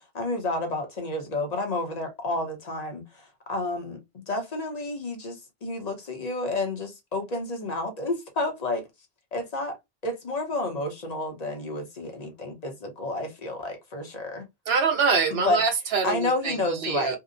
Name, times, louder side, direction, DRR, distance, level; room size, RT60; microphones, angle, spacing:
voice 1, 0.1-8.9 9.3-9.7 10.0-14.5 15.3-15.6 16.0-17.2, left 2 dB, 40° left, 0.8 m, -30 dB
voice 2, 14.7-17.2, right 5 dB, 75° right, 0.8 m, -25 dB
2.8 x 2.1 x 2.4 m
omnidirectional pair, 1.1 m